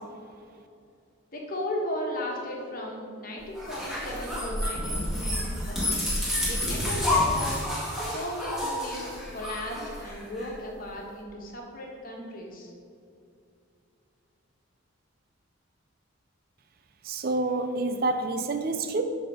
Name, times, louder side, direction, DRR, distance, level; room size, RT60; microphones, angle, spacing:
voice 1, 1.3-6.0 6.5-7.6 8.0-12.7, left 1 dB, 40° left, -1 dB, 1.5 m, -36 dB
sound 1, 3.5-10.5, left 1 dB, ahead, 1.9 m, -29 dB
voice 2, 17.1-19.0, right 2 dB, 45° right, 8 dB, 0.5 m, -28 dB
11.5 x 4.2 x 5.0 m, 2.5 s
head